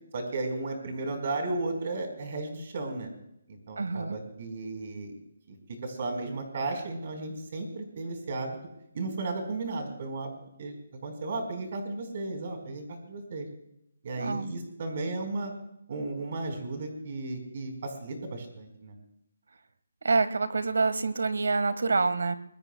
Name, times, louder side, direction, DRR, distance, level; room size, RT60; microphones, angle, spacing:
voice 1, 0.1-3.1 3.5-5.1 5.5-5.6 5.8-8.6 8.9-10.8 11.0-13.5 14.0-15.5 15.9-18.9, right 2 dB, 45° right, 5 dB, 4.2 m, -34 dB
voice 2, 3.8-4.2 14.2-14.4 20.0-22.4, right 4 dB, 90° right, 13 dB, 1.5 m, -26 dB
26.0 x 21.5 x 2.2 m, 0.79 s
hypercardioid pair, 170°, 0 cm